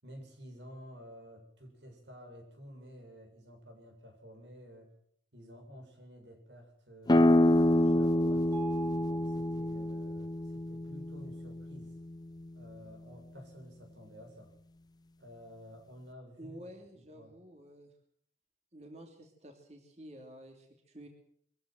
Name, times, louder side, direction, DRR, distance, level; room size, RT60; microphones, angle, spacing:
voice 1, 0.0-4.9 5.3-8.5 9.1-12.0 12.5-14.5 15.2-16.7 16.9-17.3, equal, 80° right, 4 dB, 7.6 m, -52 dB
sound 1, 7.1-12.5, left 1 dB, 20° left, 0.8 m, -27 dB
Mallet percussion, 8.5-10.5, right 5 dB, 20° right, 4.1 m, -46 dB
voice 2, 16.4-17.9 18.7-21.1, right 1 dB, 35° right, 3 dB, 3.0 m, -50 dB
23.0 x 15.5 x 7.8 m, 0.64 s
head